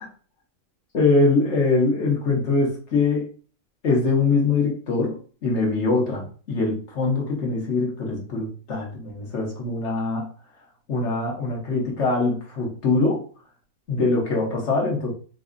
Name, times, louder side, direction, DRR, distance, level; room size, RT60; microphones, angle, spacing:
voice 1, 0.9-3.3 3.8-10.3 10.9-13.2 13.9-15.1, left 3 dB, 60° left, -1 dB, 1.2 m, -23 dB
4.0 x 2.6 x 2.5 m, 0.40 s
omnidirectional pair, 1.4 m